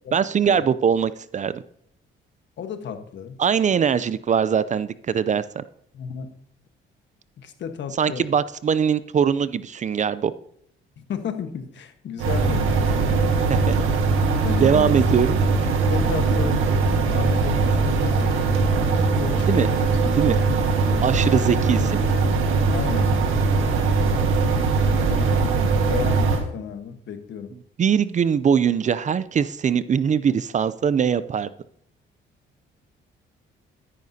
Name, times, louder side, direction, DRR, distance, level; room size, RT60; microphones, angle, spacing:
voice 1, 0.1-1.6 3.4-5.6 8.0-10.3 13.5-13.8 14.6-15.4 19.5-19.7 20.0-20.4 21.0-22.1 27.8-31.5, right 7 dB, 40° right, 16 dB, 0.4 m, -21 dB
voice 2, 2.6-3.4 5.9-6.3 7.4-8.3 11.0-13.2 14.4-14.9 15.9-16.7 17.1-18.7 19.0-20.0 20.2-20.4 21.3-21.5 22.7-23.2 24.9-25.3 25.9-27.5, left 7 dB, 65° left, 8 dB, 1.3 m, -33 dB
sound 1, 12.2-26.4, right 4 dB, 90° right, 1.6 m, -21 dB
13.5 x 10.0 x 2.8 m, 0.68 s
cardioid pair, 90°, 20 cm